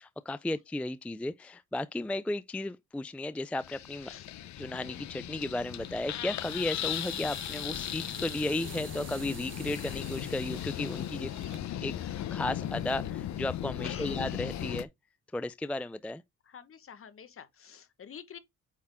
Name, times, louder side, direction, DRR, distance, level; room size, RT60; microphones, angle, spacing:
voice 1, 0.3-4.1 4.6-11.3 11.8-14.9 15.3-16.2, left 2 dB, 5° left, 0.4 m, -34 dB
sound 1, 3.6-14.9, left 11 dB, 65° left, 0.8 m, -37 dB
sound 2, 5.7-11.6, right 9 dB, 40° right, 0.6 m, -50 dB
voice 2, 13.8-14.2 16.4-18.4, left 8 dB, 45° left, 1.4 m, -47 dB
8.7 x 3.6 x 3.5 m
cardioid pair, 90°, 30 cm